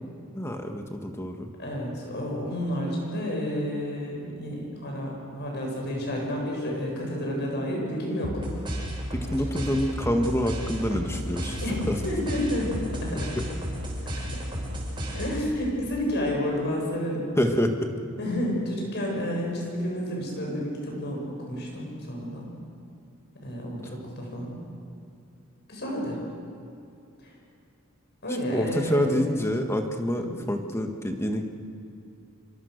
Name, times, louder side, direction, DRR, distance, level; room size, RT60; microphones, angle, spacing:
voice 1, 0.3-1.5 9.1-11.6 11.9-12.0 17.4-17.9 28.5-31.4, equal, 10° left, 4 dB, 1.6 m, -27 dB
voice 2, 1.6-8.4 11.6-13.3 14.3-14.4 15.1-17.3 18.2-22.5 23.4-24.6 25.7-26.2 27.2-27.3 28.2-29.1 30.1-30.3, equal, 50° left, -1 dB, 7.2 m, -30 dB
sound 1, 8.2-15.7, equal, 20° right, 6.8 m, -33 dB
27.0 x 24.0 x 6.7 m, 2.8 s
head